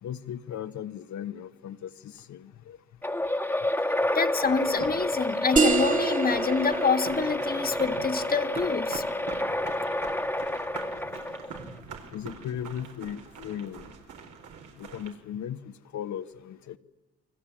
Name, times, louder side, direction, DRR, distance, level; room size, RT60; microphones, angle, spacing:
voice 1, 0.0-2.8 12.1-13.9 14.8-16.8, left 9 dB, 70° left, 7 dB, 1.3 m, -37 dB
sound 1, 3.0-11.8, left 1 dB, 5° left, 1.5 m, -29 dB
voice 2, 4.1-9.0, left 5 dB, 30° left, 10 dB, 1.6 m, -27 dB
sound 2, 4.4-15.1, right 5 dB, 75° right, 5.0 m, -44 dB
sound 3, 5.6-10.9, right 4 dB, 25° right, 2.2 m, -30 dB
29.0 x 24.0 x 8.7 m, 1.1 s
cardioid pair, 90°, 30 cm